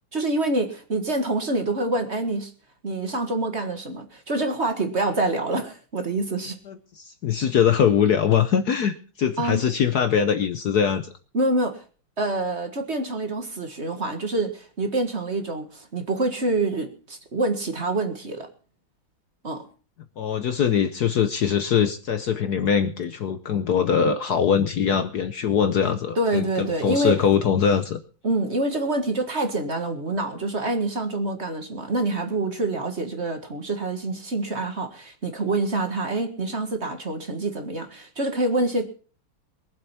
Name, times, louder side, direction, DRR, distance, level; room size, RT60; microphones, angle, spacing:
voice 1, 0.1-2.5 2.8-6.6 9.4-9.6 11.3-11.8 12.2-18.5 19.4-19.7 26.2-27.2 28.2-38.8, right 2 dB, 35° right, 6 dB, 1.8 m, -26 dB
voice 2, 6.7-11.1 20.2-28.0, left 7 dB, 60° left, 10 dB, 1.2 m, -22 dB
22.5 x 7.7 x 5.7 m, 0.40 s
omnidirectional pair, 2.2 m